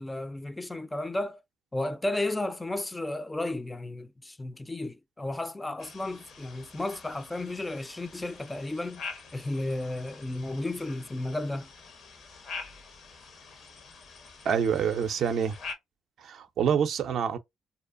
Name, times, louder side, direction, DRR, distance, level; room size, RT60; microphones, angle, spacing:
voice 1, 0.0-1.4 1.7-9.0 9.3-11.7, left 2 dB, 15° left, 0.3 m, -33 dB
sound 1, 5.8-15.8, left 4 dB, 60° left, 0.7 m, -46 dB
voice 2, 14.5-15.6 16.2-17.4, right 7 dB, 60° right, 0.4 m, -26 dB
2.6 x 2.1 x 2.4 m
hypercardioid pair, 45°, 0 cm